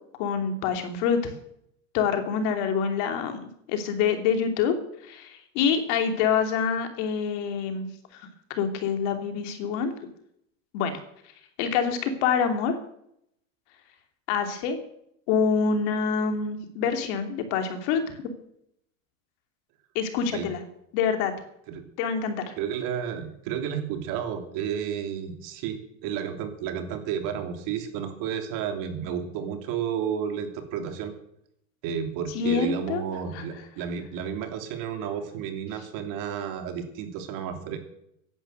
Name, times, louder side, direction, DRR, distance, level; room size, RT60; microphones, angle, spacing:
voice 1, 0.2-1.3 1.9-4.7 5.0-9.9 10.7-10.9 11.6-12.7 14.3-14.8 15.3-18.0 19.9-20.6 20.9-21.3 22.0-22.5 32.3-33.0 33.3-33.4, left 6 dB, 60° left, 6 dB, 3.0 m, -26 dB
voice 2, 22.6-31.1 31.8-37.8, right 8 dB, 50° right, 6 dB, 3.1 m, -32 dB
15.5 x 11.0 x 6.7 m, 0.73 s
supercardioid pair, 135°, 40 cm